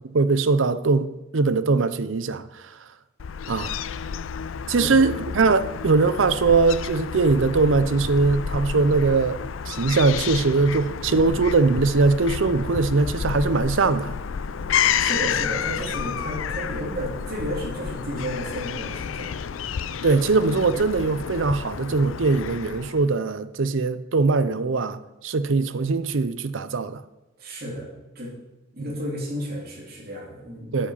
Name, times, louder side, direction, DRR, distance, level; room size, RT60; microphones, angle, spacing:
voice 1, 0.1-2.8 3.5-3.8 4.7-14.1 20.0-27.0 30.7-30.9, right 3 dB, 80° right, 0.6 m, -21 dB
Fowl / Gull seagull, 3.2-23.1, left 7 dB, 90° left, 0.5 m, -30 dB
voice 2, 4.8-5.2 15.0-19.4 27.4-27.9 28.1-28.3 28.7-30.9, equal, 50° right, 3.1 m, -32 dB
8.8 x 7.5 x 7.2 m
head